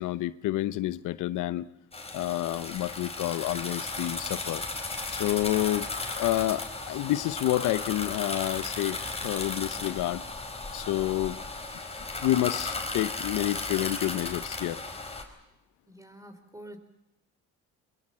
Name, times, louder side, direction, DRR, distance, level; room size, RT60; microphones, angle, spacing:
voice 1, 0.0-1.7 2.1-5.9 6.2-10.3 10.7-11.4 12.2-14.8, left 15 dB, 90° left, 16 dB, 0.8 m, -29 dB
sound 1, 1.9-15.2, left 3 dB, 20° left, 4.3 m, -35 dB
voice 2, 15.9-16.8, right 1 dB, 10° right, 9 dB, 4.0 m, -47 dB
22.0 x 22.0 x 7.5 m, 0.92 s
cardioid pair, 90°, 30 cm